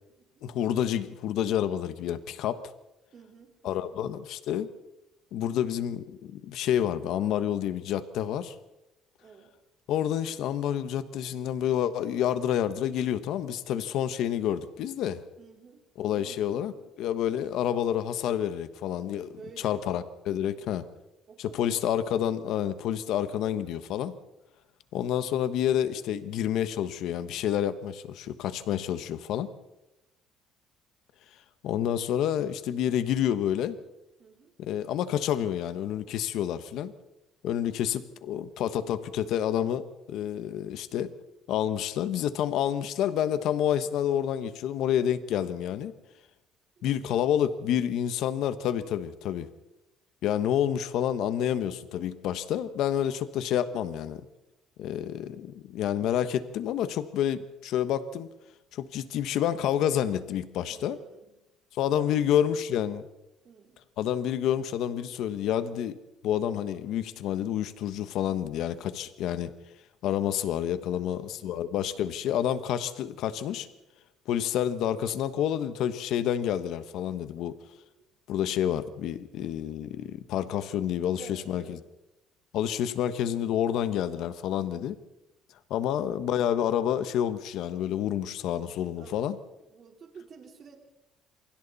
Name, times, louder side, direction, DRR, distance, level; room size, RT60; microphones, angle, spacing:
voice 1, 0.4-2.7 3.6-4.7 5.3-8.5 9.9-15.2 16.0-19.4 19.6-20.9 21.4-24.2 24.9-29.5 31.6-33.8 34.6-36.9 37.4-41.1 41.5-45.9 46.8-49.5 50.2-54.2 54.8-58.3 58.7-61.0 61.8-63.0 64.0-66.0 66.2-69.5 70.0-73.7 74.3-77.6 78.3-81.8 82.5-85.0 85.7-89.4, left 10 dB, 65° left, 12 dB, 1.3 m, -29 dB
voice 2, 3.1-4.0 9.2-9.6 15.4-15.8 16.1-16.7 19.4-19.8 21.3-21.8 34.2-34.5 46.8-47.4 60.7-61.4 62.0-62.2 63.4-63.8 70.9-71.1 71.4-71.9 78.0-78.1 81.1-81.8 89.0-89.3 89.6-90.8, right 5 dB, 40° right, 2 dB, 4.1 m, -50 dB
27.5 x 24.5 x 4.2 m, 0.93 s
cardioid pair, 150°, 0 cm